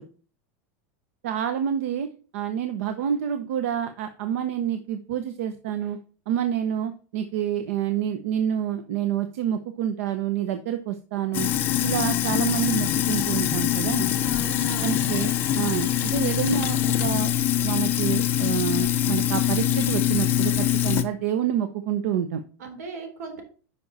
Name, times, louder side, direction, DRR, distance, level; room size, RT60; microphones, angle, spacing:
voice 1, 1.2-2.1 2.3-6.0 6.3-11.5 11.8-14.1 14.8-17.3 17.6-22.4, right 9 dB, 60° right, 9 dB, 0.9 m, -28 dB
Sink (filling or washing), 11.3-21.0, left 11 dB, 25° left, 0.7 m, -24 dB
voice 2, 14.2-15.1 22.6-23.4, right 5 dB, 80° right, 5 dB, 3.8 m, -37 dB
9.9 x 5.9 x 4.1 m, 0.39 s
supercardioid pair, 180°, 8 cm